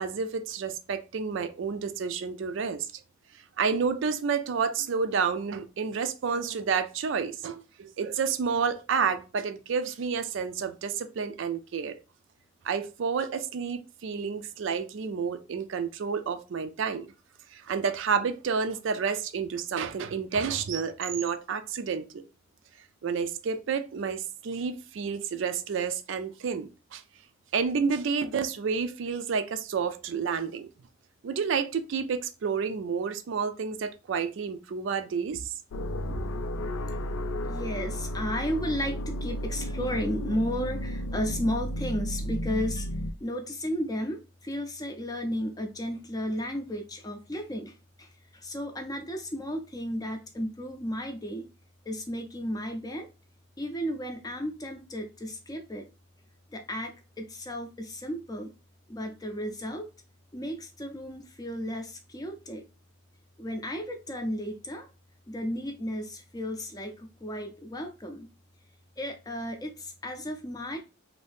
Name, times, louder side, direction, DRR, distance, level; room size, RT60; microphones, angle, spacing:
voice 1, 0.0-2.9 3.6-12.0 12.6-17.1 17.5-22.2 23.0-27.0 27.5-30.7 31.2-35.4, right 6 dB, 65° right, 0.4 m, -30 dB
sound 1, 35.7-43.1, equal, 85° left, 0.4 m, -33 dB
voice 2, 37.5-42.9 43.2-51.5 51.9-53.1 53.6-55.9 56.5-58.5 58.9-59.9 60.3-62.6 63.4-64.9 65.3-68.3 69.0-70.8, equal, 20° left, 0.5 m, -34 dB
2.7 x 2.6 x 3.4 m
head